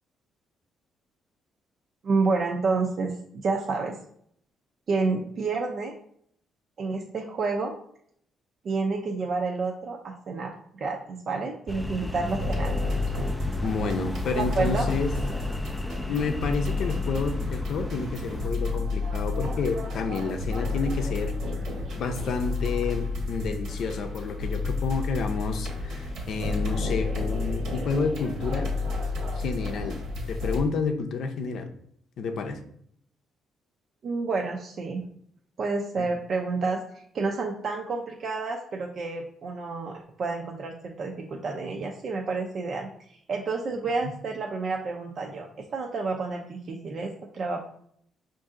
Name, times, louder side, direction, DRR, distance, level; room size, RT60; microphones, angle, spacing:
voice 1, 2.0-3.9 4.9-5.9 6.8-7.7 8.6-12.8 14.4-14.9 34.0-35.0 35.6-36.8 37.1-42.9 43.3-47.6, right 4 dB, 55° right, 0 dB, 0.5 m, -29 dB
sound 1, 11.7-18.5, left 1 dB, 5° left, 0.3 m, -35 dB
sound 2, 12.3-30.6, left 3 dB, 75° right, 1.3 m, -31 dB
voice 2, 13.6-15.1 16.1-21.3 21.9-28.7 29.3-30.0 30.3-31.7 32.2-32.6 36.0-36.1 43.7-43.8, left 4 dB, 70° left, 6 dB, 0.6 m, -30 dB
5.3 x 2.6 x 3.7 m, 0.67 s
cardioid pair, 90°, 0 cm